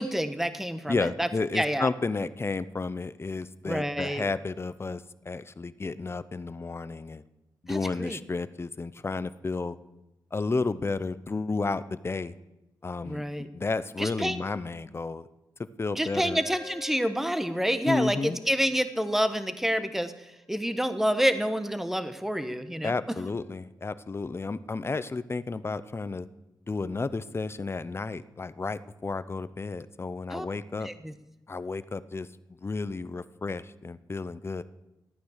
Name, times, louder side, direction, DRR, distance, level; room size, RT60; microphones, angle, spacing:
voice 1, 0.0-1.3 1.5-1.9 3.6-4.2 7.7-8.2 13.0-13.5 14.0-14.4 15.9-22.9 30.3-30.5 30.8-31.1, equal, 5° right, 10 dB, 1.2 m, -28 dB
voice 2, 0.9-7.2 7.6-9.8 10.3-12.3 12.8-13.2 13.5-15.3 15.8-16.4 17.9-18.4 22.8-26.3 26.7-30.9 31.5-32.3 32.6-34.6, left 3 dB, 30° left, 15 dB, 0.7 m, -32 dB
Wind instrument woodwind instrument, 16.3-23.6, left 4 dB, 15° left, 1.2 m, -53 dB
14.0 x 9.3 x 6.6 m, 0.93 s
cardioid pair, 75°, 8 cm